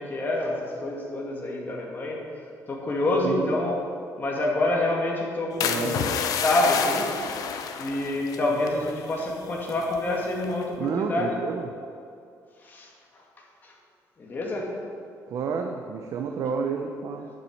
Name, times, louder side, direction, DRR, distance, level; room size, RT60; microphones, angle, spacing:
voice 1, 0.0-2.2 2.7-3.8 4.2-7.1 7.8-11.3 12.6-13.2 13.6-13.7 14.2-14.7, left 2 dB, 30° left, -1 dB, 2.2 m, -27 dB
voice 2, 3.2-3.6 5.6-6.1 10.8-11.7 15.3-17.3, right 5 dB, 60° right, 3 dB, 0.8 m, -30 dB
sound 1, 5.6-10.0 10.4-10.8, left 7 dB, 70° left, 0.9 m, -30 dB
9.0 x 7.6 x 8.6 m, 2.5 s
cardioid pair, 160°, 7 cm